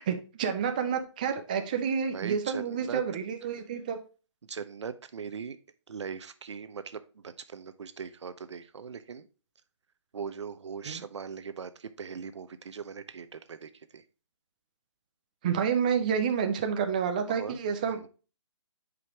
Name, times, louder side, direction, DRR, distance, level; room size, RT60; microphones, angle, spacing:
voice 1, 0.0-4.0 10.9-11.0 15.4-18.1, right 7 dB, 15° right, 6 dB, 0.4 m, -29 dB
voice 2, 2.1-3.0 4.4-5.6 5.9-9.3 10.1-14.0 17.3-17.6 17.9-18.1, right 6 dB, 65° right, 12 dB, 0.8 m, -40 dB
9.3 x 5.1 x 2.9 m, 0.34 s
hypercardioid pair, 165°, 16 cm